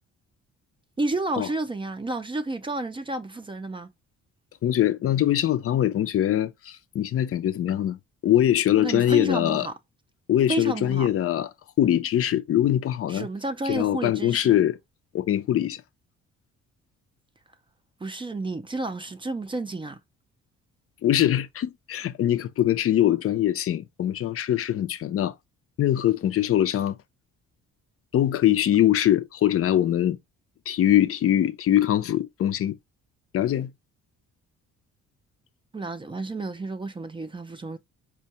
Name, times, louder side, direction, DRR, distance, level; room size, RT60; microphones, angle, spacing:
voice 1, 1.0-3.9 8.8-9.7 10.5-11.1 13.1-14.6 18.0-20.0 35.7-37.8, right 2 dB, 15° right, 0.4 m, -31 dB
voice 2, 4.6-9.7 10.3-11.5 11.8-13.3 13.7-14.8 15.1-15.8 21.0-25.3 25.8-27.0 28.1-30.2 30.7-32.8 33.3-33.7, left 12 dB, 50° left, 0.5 m, -22 dB
4.4 x 2.2 x 2.7 m
cardioid pair, 90°, 30 cm